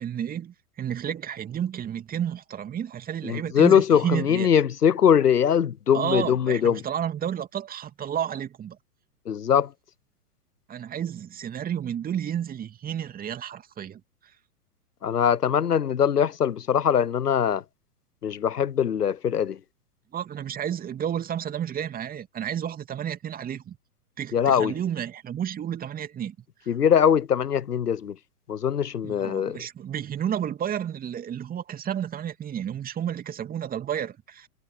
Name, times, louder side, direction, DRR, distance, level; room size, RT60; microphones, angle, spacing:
voice 1, 0.0-4.5 5.9-8.8 10.7-14.0 20.1-23.8 24.2-26.4 29.0-34.5, right 9 dB, 20° right, 2.6 m, -31 dB
voice 2, 3.2-6.8 9.3-9.7 15.0-17.6 18.2-19.6 24.3-24.7 26.7-28.1 28.5-29.6, left 8 dB, 80° left, 0.9 m, -22 dB
figure-of-eight pair, 110°, 46 cm